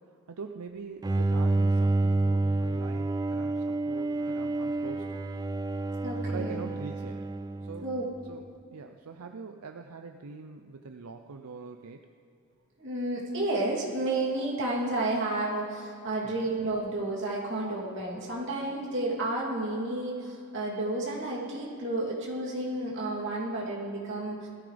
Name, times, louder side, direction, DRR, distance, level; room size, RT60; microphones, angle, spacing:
voice 1, 0.0-5.2 6.2-7.2 7.6-7.9 8.3-8.4 8.7-12.1 16.4-16.5, right 4 dB, 85° right, 5 dB, 0.6 m, -43 dB
Bowed string instrument, 1.0-8.3, right 2 dB, 15° right, 0.3 m, -29 dB
voice 2, 6.0-6.7 7.8-8.0 12.8-24.5, right 2 dB, 55° right, -4 dB, 3.0 m, -31 dB
20.0 x 14.0 x 3.4 m, 2.6 s
head